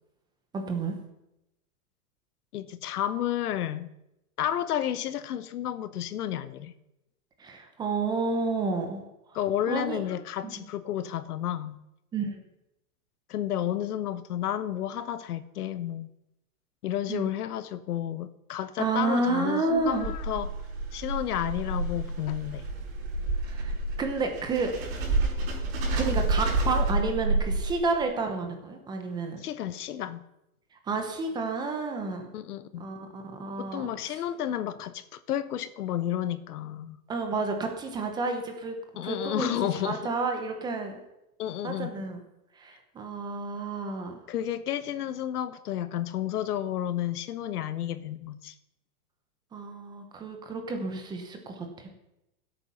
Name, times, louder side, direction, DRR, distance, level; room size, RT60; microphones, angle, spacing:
voice 1, 0.5-0.9 7.4-9.0 9.7-10.0 10.4-10.5 12.1-12.4 17.1-17.3 18.8-20.1 23.4-24.7 25.9-29.4 30.8-32.3 32.8-34.2 37.1-38.7 39.0-39.6 39.8-40.9 41.6-42.2 42.6-44.2 49.5-51.9, right 3 dB, 10° right, 5 dB, 1.0 m, -30 dB
voice 2, 2.5-3.9 4.4-6.7 9.3-11.8 13.3-16.1 16.8-20.5 20.9-22.6 29.4-30.2 32.3-32.9 33.6-37.0 38.9-40.0 41.4-41.9 44.3-48.5, left 11 dB, 80° left, 14 dB, 1.1 m, -31 dB
sound 1, 19.7-28.0, right 2 dB, 40° right, 5.9 m, -29 dB
16.0 x 8.5 x 5.6 m, 0.90 s
supercardioid pair, 170°, 45 cm